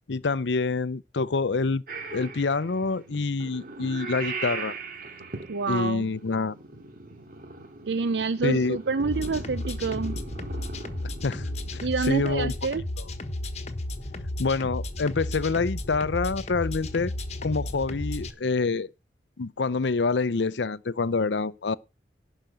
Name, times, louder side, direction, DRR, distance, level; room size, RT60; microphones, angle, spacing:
voice 1, 0.1-1.8 2.1-4.7 5.7-6.6 8.4-8.8 11.2-11.4 12.0-12.5 14.4-17.1 17.4-18.9 19.4-21.8, left 4 dB, 80° left, 0.6 m, -26 dB
Purr / Meow, 1.9-11.8, right 3 dB, 55° right, 2.3 m, -39 dB
voice 2, 5.5-6.1 7.9-10.1 11.8-12.8, right 4 dB, 75° right, 0.6 m, -27 dB
sound 1, 9.0-18.3, left 1 dB, 40° left, 1.3 m, -34 dB
11.5 x 5.1 x 7.8 m
head